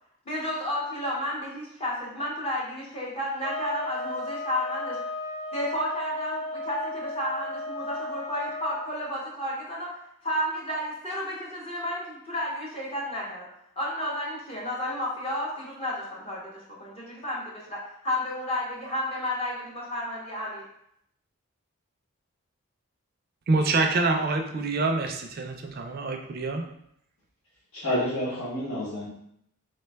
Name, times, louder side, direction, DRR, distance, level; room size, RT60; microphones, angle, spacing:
voice 1, 0.3-5.0 5.5-9.9 10.2-13.5 13.8-20.6, left 1 dB, 30° left, -4 dB, 0.6 m, -32 dB
sound 1, 3.4-8.8, left 2 dB, 70° left, 0.7 m, -35 dB
voice 2, 23.5-26.7, right 3 dB, 45° right, 4 dB, 0.4 m, -26 dB
voice 3, 27.7-29.1, left 1 dB, 85° left, -11 dB, 1.0 m, -29 dB
3.2 x 2.2 x 3.3 m, 0.73 s
head